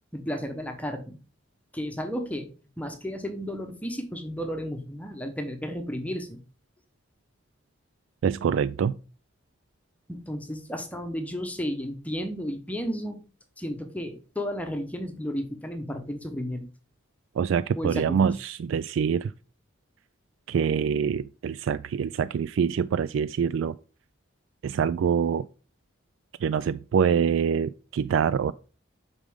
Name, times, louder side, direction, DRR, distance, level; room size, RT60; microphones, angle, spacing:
voice 1, 0.1-1.2 1.7-2.5 2.8-6.4 10.1-13.2 13.6-16.7 17.7-18.3, equal, 5° left, 0.9 m, -33 dB
voice 2, 8.2-8.9 17.4-19.3 20.5-23.8 24.6-25.5 26.4-28.5, right 7 dB, 75° right, 0.3 m, -25 dB
8.1 x 5.2 x 3.6 m
head